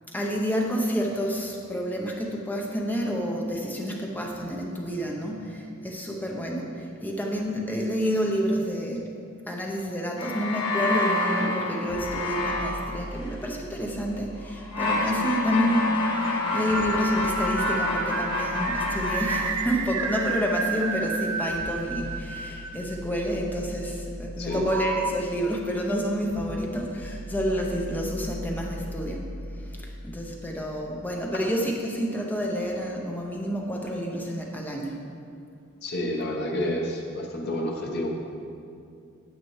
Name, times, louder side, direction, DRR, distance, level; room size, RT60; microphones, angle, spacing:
voice 1, 0.1-9.1 9.5-29.3 29.6-35.0, equal, 10° left, -1 dB, 0.6 m, -29 dB
sound 1, 10.2-13.6 14.4-19.4, left 2 dB, 75° left, 1.9 m, -28 dB
sound 2, 11.9-15.9 16.7-30.7, equal, 90° left, 1.5 m, -41 dB
sound 3, 16.2-23.4 24.5-25.1, right 5 dB, 80° right, 0.4 m, -31 dB
voice 2, 35.8-38.1, left 1 dB, 50° left, -1 dB, 0.9 m, -29 dB
9.3 x 7.4 x 3.1 m, 2.5 s
head